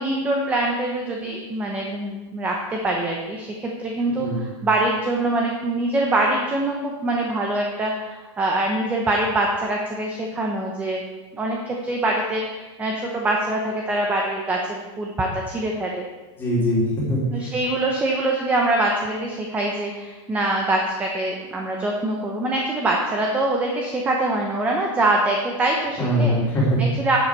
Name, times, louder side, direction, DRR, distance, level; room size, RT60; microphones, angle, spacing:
voice 1, 0.0-11.0 11.3-16.0 17.3-26.4 26.8-27.2, right 2 dB, 10° right, 0 dB, 0.8 m, -24 dB
voice 2, 4.1-4.4 16.4-17.5 26.0-26.9, equal, 15° left, -5 dB, 2.8 m, -22 dB
12.5 x 7.1 x 4.6 m, 1.2 s
supercardioid pair, 165°, 16 cm